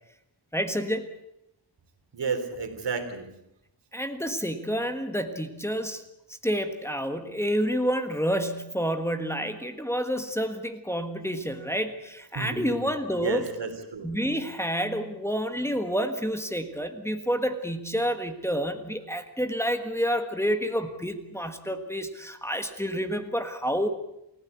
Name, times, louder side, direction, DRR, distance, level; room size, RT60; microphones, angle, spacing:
voice 1, 0.5-1.0 3.9-6.0 6.3-13.4 14.0-23.9, equal, 5° left, 6 dB, 1.5 m, -29 dB
voice 2, 2.1-3.3 12.4-12.9 13.1-14.1, right 4 dB, 75° right, 7 dB, 3.5 m, -32 dB
28.5 x 16.0 x 8.4 m, 0.85 s
wide cardioid pair, 180°, 42 cm